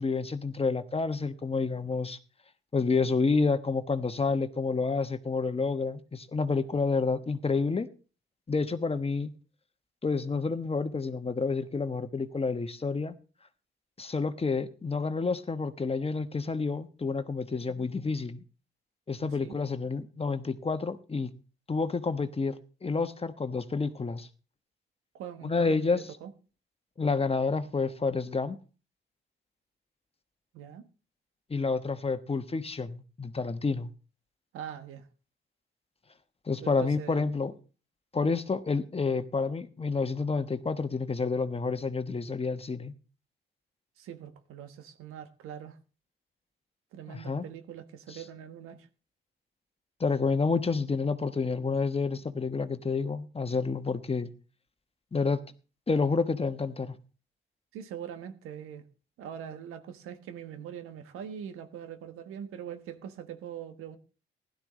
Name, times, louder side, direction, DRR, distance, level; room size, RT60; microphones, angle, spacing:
voice 1, 0.0-2.2 2.7-7.9 8.5-9.3 10.0-13.1 14.0-18.4 19.1-21.3 21.7-22.6 22.8-24.3 25.4-26.0 27.0-28.6 31.5-33.9 36.5-37.5 38.1-42.9 47.1-47.4 48.1-48.2 50.0-54.3 55.1-55.4 55.9-57.0, left 4 dB, 25° left, 1.2 m, -29 dB
voice 2, 19.2-19.5 25.1-26.3 30.5-30.9 34.5-35.1 36.6-37.3 44.0-45.8 46.9-48.9 57.7-58.8 59.2-64.0, right 9 dB, 90° right, 1.3 m, -42 dB
16.0 x 12.0 x 3.1 m
supercardioid pair, 65°, 21 cm